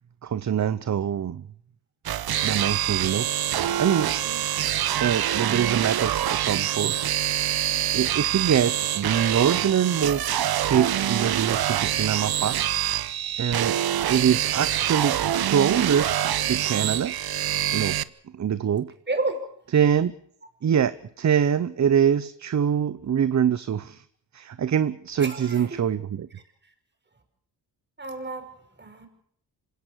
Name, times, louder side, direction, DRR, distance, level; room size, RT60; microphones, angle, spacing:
voice 1, 0.2-1.5 2.4-3.3 3.8-4.1 5.0-7.0 7.9-12.6 13.4-13.8 14.1-15.2 15.5-17.1 17.7-18.0 18.3-18.9 19.7-20.1 20.6-24.0 24.3-26.3, right 8 dB, 45° right, 0.8 m, -24 dB
sound 1, 2.1-18.0, right 11 dB, 65° right, 0.9 m, -25 dB
voice 2, 19.1-19.4 25.2-25.8 28.0-28.5 28.8-29.1, right 2 dB, 25° right, 5.5 m, -31 dB
26.5 x 17.5 x 6.5 m
cardioid pair, 105°, 40 cm